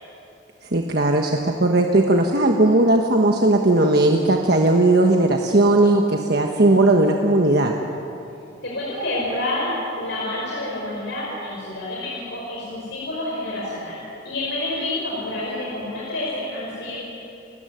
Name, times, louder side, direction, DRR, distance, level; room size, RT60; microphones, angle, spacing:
voice 1, 0.7-7.7, right 2 dB, 60° right, 2 dB, 1.4 m, -17 dB
voice 2, 8.6-14.0 14.2-17.0, left 1 dB, 75° left, -5 dB, 5.4 m, -28 dB
29.0 x 14.5 x 9.3 m, 2.9 s
head